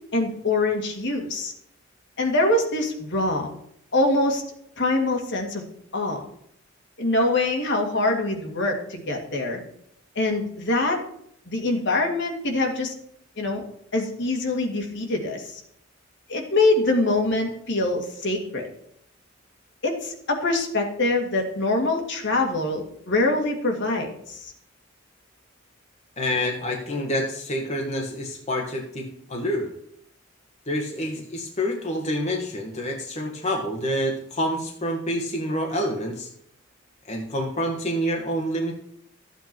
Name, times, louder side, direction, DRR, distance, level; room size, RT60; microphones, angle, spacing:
voice 1, 0.1-1.5 2.2-3.5 3.9-4.4 4.8-5.6 5.9-6.2 7.0-9.6 10.2-11.0 11.5-12.9 13.4-13.6 13.9-15.6 16.3-18.7 19.8-24.5, left 2 dB, 60° left, 2 dB, 2.3 m, -24 dB
voice 2, 26.2-29.7 30.7-36.3 37.0-38.7, equal, 35° left, 1 dB, 1.6 m, -27 dB
14.0 x 8.3 x 4.6 m, 0.69 s
head